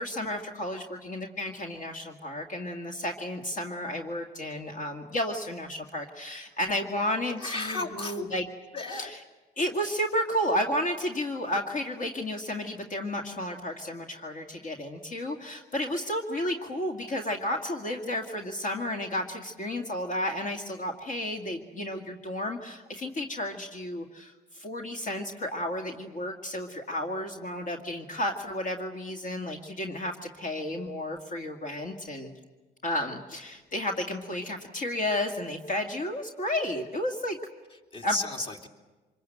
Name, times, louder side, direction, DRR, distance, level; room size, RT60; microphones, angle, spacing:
voice 1, 0.0-8.5 8.9-9.1 9.6-32.3 32.8-37.4 38.0-38.2, left 1 dB, 50° left, 2 dB, 2.2 m, -32 dB
voice 2, 7.3-8.3 8.7-9.1 37.7-38.7, left 2 dB, 35° left, 3 dB, 2.6 m, -34 dB
25.5 x 22.5 x 7.9 m, 1.2 s
cardioid pair, 110°, 17 cm